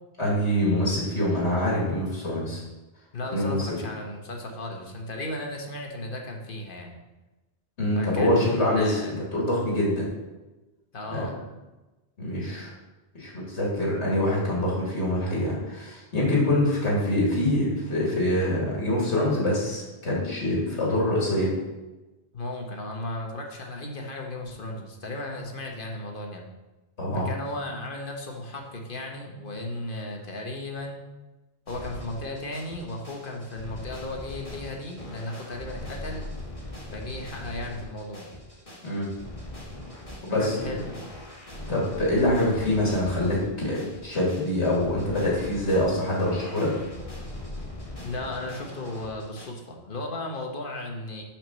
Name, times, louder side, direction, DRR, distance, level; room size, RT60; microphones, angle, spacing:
voice 1, 0.2-2.6 3.3-3.7 7.8-10.1 11.1-11.3 12.2-12.7 13.1-21.5 27.0-27.3 38.8-39.1 40.2-40.6 41.7-46.7, left 1 dB, 85° left, -5 dB, 2.5 m, -25 dB
voice 2, 3.1-7.0 7.9-9.2 10.9-11.4 22.3-26.4 27.2-31.0 31.7-36.3 36.9-38.3 40.4-40.9 48.0-51.2, left 1 dB, 50° left, 2 dB, 1.3 m, -35 dB
sound 1, 31.7-49.5, left 1 dB, 30° left, 2.3 m, -40 dB
6.1 x 5.1 x 6.3 m, 1.1 s
omnidirectional pair, 1.1 m